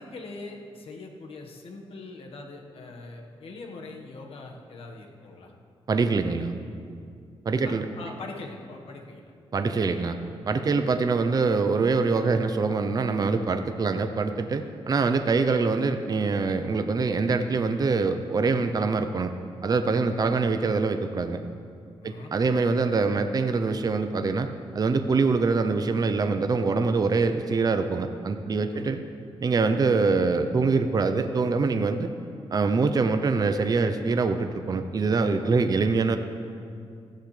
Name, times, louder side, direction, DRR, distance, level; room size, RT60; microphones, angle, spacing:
voice 1, 0.0-5.5 7.6-9.3 22.0-22.3 28.7-28.9, left 3 dB, 70° left, 2 dB, 1.4 m, -42 dB
voice 2, 5.9-6.5 7.5-7.9 9.5-10.2 10.5-19.3 19.6-21.4 22.0-29.0 29.4-32.1 32.5-36.2, right 4 dB, 40° right, 8 dB, 0.6 m, -24 dB
15.0 x 10.5 x 3.3 m, 2.3 s
cardioid pair, 90°, 10 cm